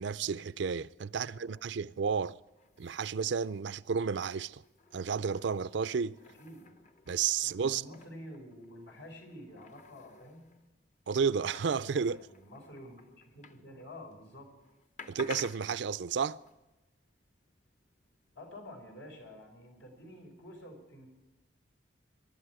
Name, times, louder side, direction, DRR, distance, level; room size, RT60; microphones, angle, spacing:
voice 1, 0.0-2.4 2.8-4.6 4.9-6.2 7.1-7.8 11.1-12.3 15.1-16.4, right 6 dB, 70° right, 0.4 m, -32 dB
voice 2, 1.1-1.7 6.3-6.7 7.4-10.5 12.1-14.6 18.3-21.1, left 1 dB, 80° left, 5.6 m, -49 dB
sound 1, 2.5-14.2 14.5-18.6, left 4 dB, 40° left, 0.8 m, -53 dB
23.0 x 12.0 x 4.9 m
head